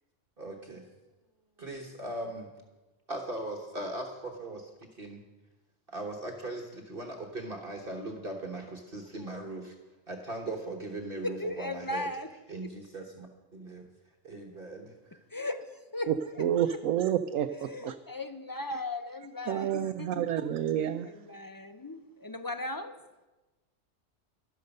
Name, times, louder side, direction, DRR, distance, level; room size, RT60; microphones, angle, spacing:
voice 1, 0.4-0.8 1.6-2.5 3.1-5.2 5.9-9.8 10.1-12.1 12.5-13.3 13.5-13.8 14.2-15.2, right 2 dB, 45° right, 1.5 m, -39 dB
voice 2, 11.2-12.3 15.3-16.8 17.5-20.1 20.4-20.6 21.0-22.9, left 2 dB, 30° left, 0.4 m, -37 dB
voice 3, 16.1-17.9 19.5-21.1, right 10 dB, 90° right, 1.0 m, -29 dB
13.0 x 12.0 x 5.4 m
omnidirectional pair, 1.3 m